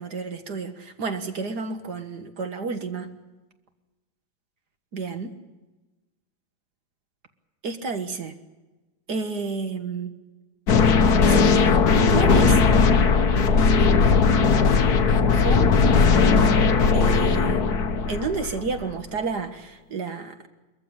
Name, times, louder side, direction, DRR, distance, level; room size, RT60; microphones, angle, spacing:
voice 1, 0.0-3.1 4.9-5.3 7.6-8.4 9.1-10.1 11.3-11.7 12.1-12.6 15.3-16.5 16.9-17.7 18.1-20.4, right 4 dB, 50° right, 7 dB, 2.0 m, -30 dB
sound 1, 10.7-18.8, left 5 dB, 50° left, 1.6 m, -18 dB
23.5 x 14.5 x 9.9 m, 1.1 s
omnidirectional pair, 2.3 m